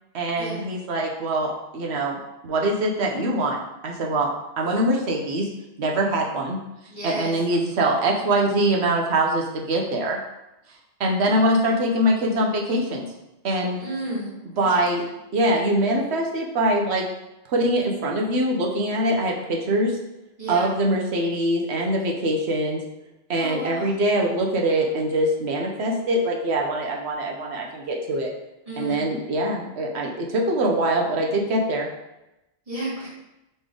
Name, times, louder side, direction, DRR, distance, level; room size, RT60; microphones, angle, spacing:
voice 1, 0.1-4.3 4.6-5.5 5.8-6.6 7.0-10.2 11.0-13.1 13.4-13.8 14.6-15.0 15.3-17.0 17.5-19.9 20.5-22.8 23.3-28.3 28.8-31.9, right 1 dB, 70° right, 0 dB, 1.0 m, -23 dB
voice 2, 6.9-7.3 13.8-14.3 20.4-20.7 23.4-23.9 28.7-29.1 32.7-33.1, right 1 dB, 30° right, -8 dB, 1.8 m, -31 dB
4.2 x 3.4 x 3.7 m, 0.92 s
omnidirectional pair, 1.2 m